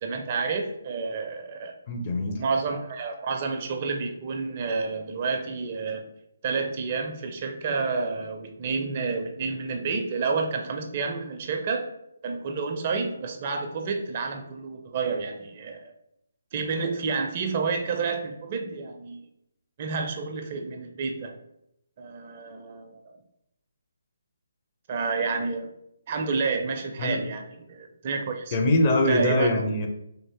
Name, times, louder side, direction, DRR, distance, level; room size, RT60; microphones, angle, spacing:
voice 1, 0.0-1.8 2.3-6.1 6.4-11.9 12.2-15.9 16.5-19.2 19.8-21.4 22.0-23.2 24.9-25.7 26.1-28.6 29.1-29.5, right 4 dB, 35° right, 4 dB, 0.4 m, -29 dB
voice 2, 1.9-2.4 27.0-27.2 28.5-29.9, left 1 dB, 30° left, 2 dB, 0.5 m, -23 dB
3.2 x 2.5 x 3.4 m, 0.80 s
figure-of-eight pair, 145°, 0 cm